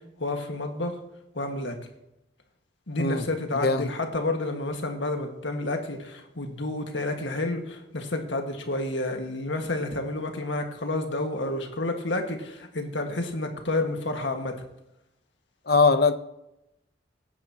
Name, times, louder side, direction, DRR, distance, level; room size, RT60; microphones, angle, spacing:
voice 1, 0.2-0.9 1.3-1.7 2.9-14.5, left 2 dB, 70° left, 1.7 m, -30 dB
voice 2, 3.5-3.9 15.7-16.1, left 4 dB, 55° left, 0.7 m, -21 dB
17.5 x 9.6 x 2.9 m
head